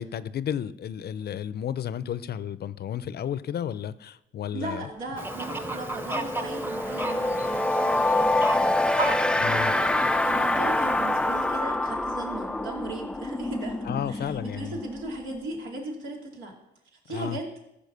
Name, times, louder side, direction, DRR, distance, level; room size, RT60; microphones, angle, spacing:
voice 1, 0.0-4.9 9.3-9.7 13.9-14.8 17.1-17.4, left 9 dB, 55° left, 16 dB, 0.6 m, -32 dB
voice 2, 4.5-8.7 9.4-9.9 10.2-14.2 14.5-16.5 16.9-17.5, right 2 dB, 85° right, 0 dB, 2.7 m, -37 dB
sound 1, 4.8-4.9 5.2-15.8, left 2 dB, 5° left, 0.3 m, -26 dB
Fowl, 5.2-11.6, right 1 dB, 10° right, 0.9 m, -36 dB
sound 2, 5.9-11.8, right 3 dB, 40° right, 4.2 m, -41 dB
14.0 x 5.0 x 6.7 m, 0.86 s
cardioid pair, 90°, 20 cm